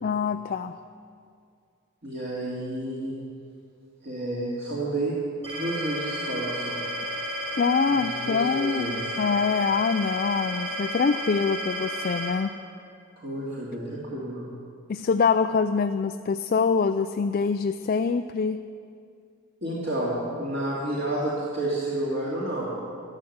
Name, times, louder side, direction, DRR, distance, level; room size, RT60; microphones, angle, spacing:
voice 1, 0.0-0.8 7.6-12.5 14.9-18.6, left 5 dB, 40° left, 8 dB, 0.3 m, -25 dB
voice 2, 2.0-3.1 4.0-5.2 5.5-6.8 7.9-9.0 13.2-14.4 19.6-22.7, right 1 dB, 45° right, -7 dB, 2.5 m, -30 dB
sound 1, 5.4-12.3, equal, 30° right, 3.6 m, -32 dB
13.0 x 11.5 x 7.9 m, 2.3 s
head